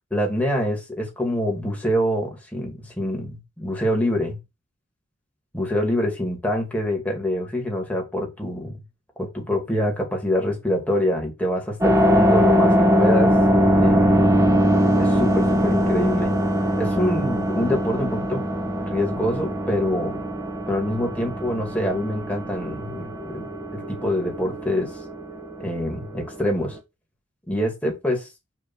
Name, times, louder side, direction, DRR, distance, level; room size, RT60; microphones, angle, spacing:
voice 1, 0.1-4.4 5.5-8.8 9.2-13.3 13.7-14.3 15.0-16.3 16.8-18.4 18.8-20.2 20.7-23.5 23.7-24.9 25.6-26.8 27.5-28.3, equal, 10° left, 2.4 m, -25 dB
sound 1, 11.8-26.8, equal, 15° right, 1.2 m, -22 dB
6.5 x 3.4 x 6.1 m
head